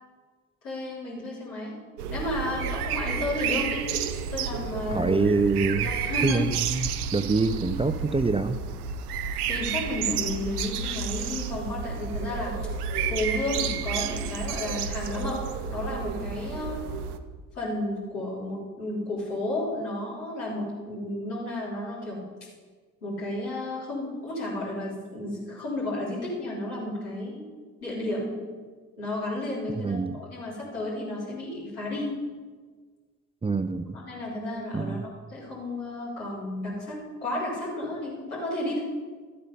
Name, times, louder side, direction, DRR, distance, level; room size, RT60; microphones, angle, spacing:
voice 1, 0.6-1.8 2.1-3.9 4.3-5.2 5.8-6.5 7.8-7.9 9.5-12.5 13.1-15.4 15.7-16.8 17.5-22.2 23.0-27.4 27.8-28.5 29.0-32.1 33.9-35.0 35.3-38.8, left 1 dB, 85° left, -7 dB, 3.8 m, -32 dB
sound 1, 2.0-17.2, right 6 dB, 85° right, 0.7 m, -31 dB
voice 2, 4.9-5.9 6.2-8.6 29.7-30.2 33.4-34.0 34.7-35.1, right 3 dB, 15° right, 10 dB, 0.6 m, -25 dB
13.0 x 8.5 x 5.5 m, 1.5 s
figure-of-eight pair, 45°, 44 cm